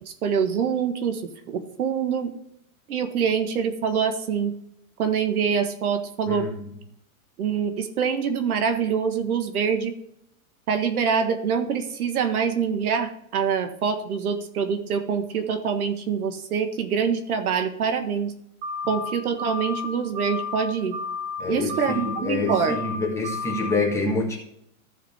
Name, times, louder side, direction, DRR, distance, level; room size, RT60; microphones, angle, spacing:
voice 1, 0.0-1.2 1.5-2.3 2.9-4.5 5.0-6.5 7.4-9.9 10.7-18.3 18.9-21.0 21.5-22.8, right 6 dB, 85° right, 8 dB, 1.7 m, -25 dB
sound 1, 18.6-19.1 19.4-19.9 20.1-20.6 20.9-21.4 21.7-22.2 22.5-23.0 23.2-23.7, left 4 dB, 50° right, 2.8 m, -31 dB
voice 2, 21.4-24.4, left 3 dB, 5° left, -2 dB, 1.5 m, -27 dB
14.5 x 5.0 x 3.6 m, 0.74 s
supercardioid pair, 155°, 43 cm